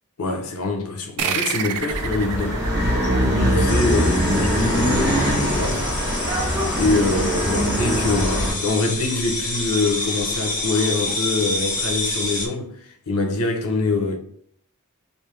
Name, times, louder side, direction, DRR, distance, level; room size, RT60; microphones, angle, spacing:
voice 1, 0.2-2.6 3.2-5.9 6.8-14.2, left 3 dB, 85° left, 0.8 m, -24 dB
sound 1, 1.2-4.2, right 7 dB, 85° right, 0.4 m, -29 dB
sound 2, 1.9-8.5, equal, 15° right, 1.4 m, -22 dB
sound 3, 3.7-12.5, left 2 dB, 35° left, 0.8 m, -28 dB
3.3 x 2.6 x 3.3 m
head